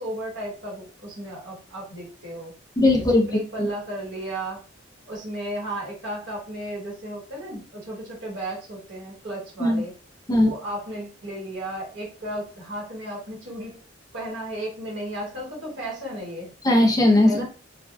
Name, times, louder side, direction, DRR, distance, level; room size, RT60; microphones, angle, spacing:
voice 1, 0.0-2.5 3.3-4.6 5.1-9.9 10.4-13.8 14.1-16.5 17.2-17.4, right 1 dB, 60° right, -4 dB, 1.3 m, -34 dB
voice 2, 2.8-3.4 9.6-9.8 10.3-10.5 16.6-17.4, left 1 dB, 20° left, 1 dB, 0.5 m, -18 dB
3.2 x 2.2 x 2.5 m, 0.37 s
head